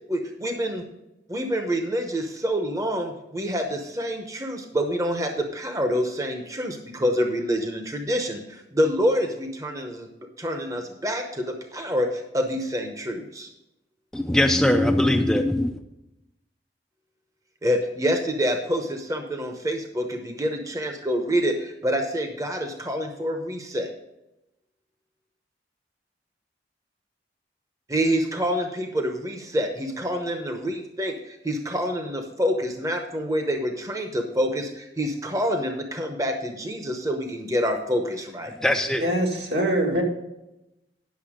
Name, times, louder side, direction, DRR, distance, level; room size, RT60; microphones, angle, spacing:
voice 1, 0.1-0.8 1.3-10.1 10.4-13.5 17.6-23.9 27.9-38.5, equal, 20° right, 4 dB, 0.8 m, -27 dB
voice 2, 14.1-15.8 38.6-39.1, left 1 dB, 5° left, 5 dB, 0.4 m, -21 dB
voice 3, 39.0-40.0, right 1 dB, 75° right, -1 dB, 2.3 m, -23 dB
10.5 x 6.6 x 5.0 m, 0.91 s
head